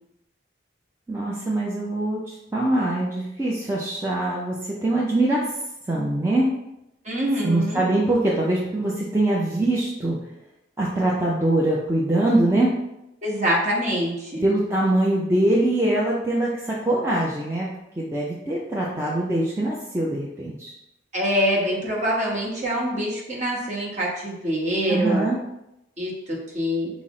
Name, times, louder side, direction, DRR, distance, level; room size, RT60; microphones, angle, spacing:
voice 1, 1.1-5.5 5.9-6.5 7.4-10.2 10.8-12.7 14.4-20.7 24.9-25.4, right 1 dB, 15° right, -5 dB, 0.4 m, -23 dB
voice 2, 7.0-7.9 13.2-14.4 21.1-25.3 26.0-26.9, equal, 40° right, -4 dB, 1.1 m, -25 dB
5.6 x 2.0 x 3.7 m, 0.87 s
head